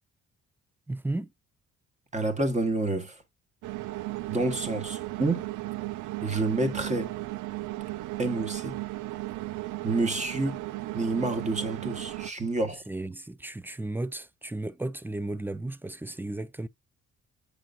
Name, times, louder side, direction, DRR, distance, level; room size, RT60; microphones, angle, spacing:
voice 1, 0.9-1.3 12.9-16.7, right 2 dB, 5° right, 0.4 m, -34 dB
voice 2, 2.1-3.2 4.3-5.5 6.2-7.1 8.2-8.7 9.8-10.6 10.9-12.8, right 2 dB, 25° right, 1.4 m, -28 dB
sound 1, 3.6-12.3, right 19 dB, 85° right, 0.5 m, -35 dB
7.8 x 5.0 x 2.5 m
cardioid pair, 90°, 30 cm